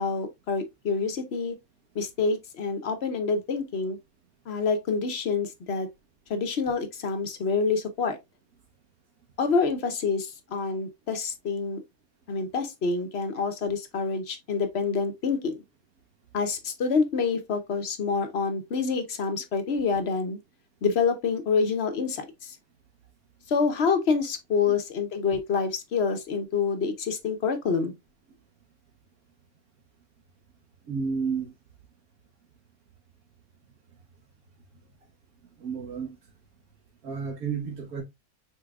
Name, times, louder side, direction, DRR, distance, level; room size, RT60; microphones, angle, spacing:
voice 1, 0.0-1.5 1.9-4.0 4.5-5.9 6.3-8.2 9.4-11.8 12.3-15.6 16.3-20.4 20.8-22.6 23.5-27.9, left 5 dB, 50° left, 1.0 m, -27 dB
voice 2, 30.9-31.5 35.6-36.2 37.0-38.0, right 5 dB, 65° right, 1.7 m, -31 dB
5.5 x 4.1 x 2.3 m
omnidirectional pair, 1.6 m